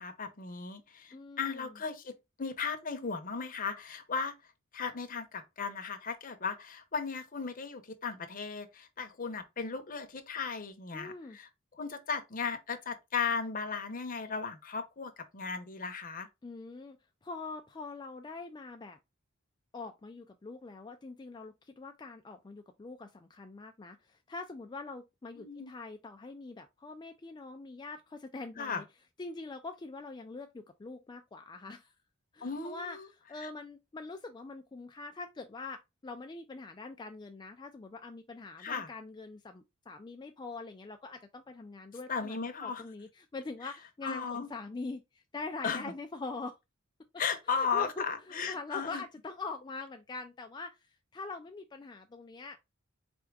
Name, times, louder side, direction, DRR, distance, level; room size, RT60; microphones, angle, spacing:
voice 1, 0.0-4.3 4.7-11.5 11.8-16.3 25.4-25.7 28.6-28.8 32.4-33.1 33.4-33.5 38.6-38.9 42.1-42.8 44.0-44.5 45.6-45.9 47.2-49.0, left 5 dB, 40° left, 0.8 m, -36 dB
voice 2, 1.1-1.8 10.9-11.4 16.4-19.0 19.7-28.8 29.2-31.9 32.3-46.6 47.5-52.6, left 3 dB, 20° left, 0.4 m, -44 dB
4.4 x 3.4 x 3.2 m
head